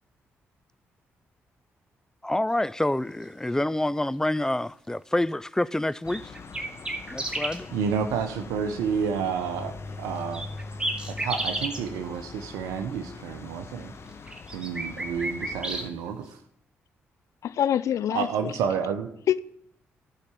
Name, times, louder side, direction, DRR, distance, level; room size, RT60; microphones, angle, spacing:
voice 1, 2.2-6.2 7.1-7.7, left 1 dB, 10° left, 0.4 m, -27 dB
sound 1, 6.0-15.9, left 3 dB, 50° left, 1.1 m, -42 dB
sound 2, 6.1-7.6 10.3-11.8 14.1-15.9, right 1 dB, 15° right, 2.2 m, -32 dB
voice 2, 7.7-10.4 11.1-13.9 14.5-16.3 18.1-19.1, right 7 dB, 85° right, 0.8 m, -30 dB
voice 3, 17.4-18.5 19.3-19.4, left 10 dB, 70° left, 0.5 m, -25 dB
12.5 x 5.8 x 8.4 m
hypercardioid pair, 45°, 6 cm